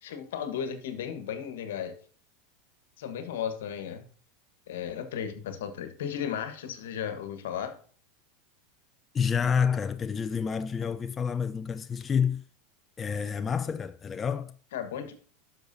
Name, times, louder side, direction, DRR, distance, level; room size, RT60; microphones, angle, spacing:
voice 1, 0.0-2.0 3.0-4.0 4.7-7.7 14.7-15.1, left 8 dB, 80° left, 1.2 m, -35 dB
voice 2, 9.1-12.4 13.0-14.5, left 6 dB, 25° left, 0.4 m, -28 dB
10.5 x 6.3 x 2.7 m
hypercardioid pair, 110°, 0 cm